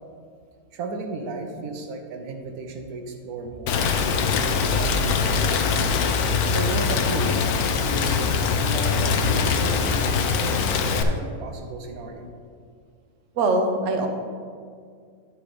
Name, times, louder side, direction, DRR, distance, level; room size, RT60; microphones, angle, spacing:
voice 1, 0.7-3.9 4.3-5.9 6.5-7.3 7.7-12.3, right 3 dB, 90° right, 4 dB, 1.3 m, -34 dB
Rain, 3.7-11.0, left 5 dB, 85° left, 1.1 m, -22 dB
voice 2, 13.4-14.1, right 2 dB, 60° right, 4 dB, 1.1 m, -22 dB
9.5 x 5.0 x 4.9 m, 2.1 s
omnidirectional pair, 1.5 m